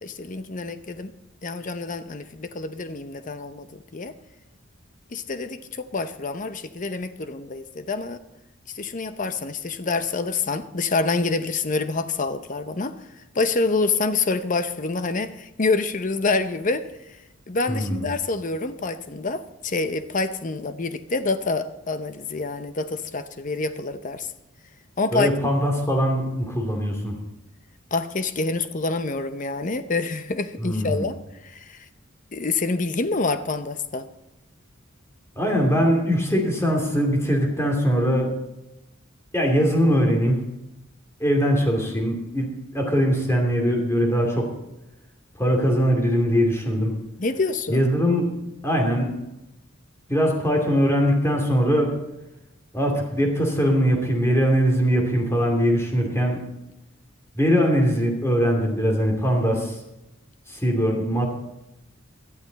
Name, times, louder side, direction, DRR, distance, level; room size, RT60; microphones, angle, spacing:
voice 1, 0.0-1.1 1.4-4.1 5.1-8.2 8.7-17.2 17.5-24.3 25.0-25.3 27.9-31.2 31.4-31.9 32.3-34.1 47.2-47.8, left 3 dB, 40° left, 11 dB, 0.7 m, -27 dB
voice 2, 17.7-18.1 25.1-27.2 30.6-31.1 35.4-38.3 39.3-40.4 41.2-44.5 45.4-46.9 47.7-48.3 48.6-49.2 50.1-52.0 52.7-56.4 57.3-59.7 60.5-61.3, equal, 15° left, 1 dB, 2.7 m, -21 dB
17.5 x 12.0 x 4.1 m, 0.92 s
head